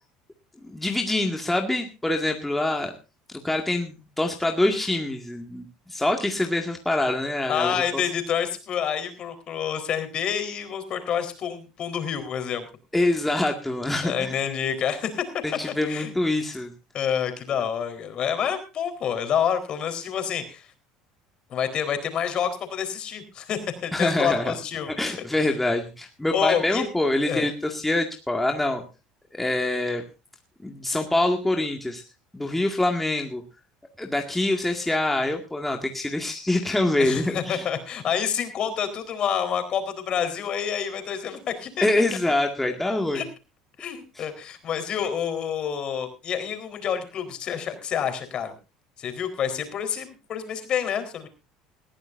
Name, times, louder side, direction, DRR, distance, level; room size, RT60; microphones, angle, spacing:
voice 1, 0.6-2.9 3.4-8.0 12.9-14.4 15.4-16.7 23.9-24.6 24.9-28.8 29.3-30.0 30.6-32.0 32.3-33.4 34.0-37.7 41.8-43.2 44.2-44.3, left 2 dB, 5° left, 2 dB, 2.0 m, -25 dB
voice 2, 7.5-12.7 14.0-15.2 15.8-16.1 16.9-20.7 21.5-24.9 25.4-25.5 26.3-26.9 27.3-27.5 37.0-41.9 43.1-43.2 43.8-48.5 49.0-51.3, left 8 dB, 45° left, 8 dB, 4.1 m, -28 dB
20.5 x 14.5 x 2.6 m, 0.31 s
cardioid pair, 120°, 2 cm